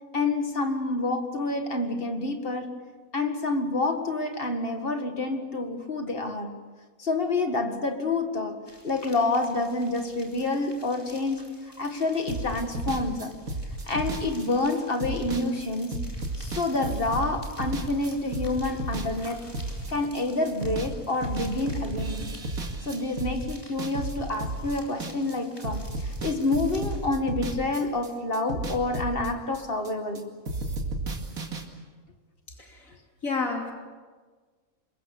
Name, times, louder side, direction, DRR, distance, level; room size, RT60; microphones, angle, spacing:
voice 1, 0.1-2.7 3.1-6.6 7.0-8.6 8.8-13.3 13.8-16.0 16.4-19.5 19.9-22.4 22.9-30.3, left 2 dB, 40° left, 5 dB, 2.1 m, -28 dB
sound 1, 8.7-27.1, equal, 15° left, 4.4 m, -50 dB
sound 2, 12.3-20.2 20.5-20.9 21.2-25.4 25.6-28.1 28.3-30.2 30.5-31.6, right 2 dB, 85° right, 2.8 m, -33 dB
voice 2, 32.6-32.9 33.2-33.7, left 4 dB, 70° left, 1 dB, 3.3 m, -30 dB
26.0 x 22.0 x 7.1 m, 1.4 s
omnidirectional pair, 1.5 m